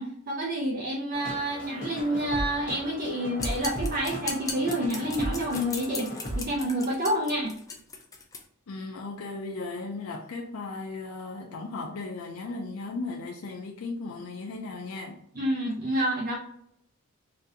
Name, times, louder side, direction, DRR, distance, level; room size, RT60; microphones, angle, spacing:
voice 1, 0.0-6.1 6.3-7.5 15.4-16.4, right 1 dB, 40° right, 0.6 m, -28 dB
sound 1, 1.1-6.4, equal, 40° left, 0.9 m, -36 dB
sound 2, 3.4-8.4, left 4 dB, 15° left, 0.4 m, -38 dB
voice 2, 8.7-15.2, left 3 dB, 85° left, 0.5 m, -36 dB
4.0 x 2.5 x 2.7 m
head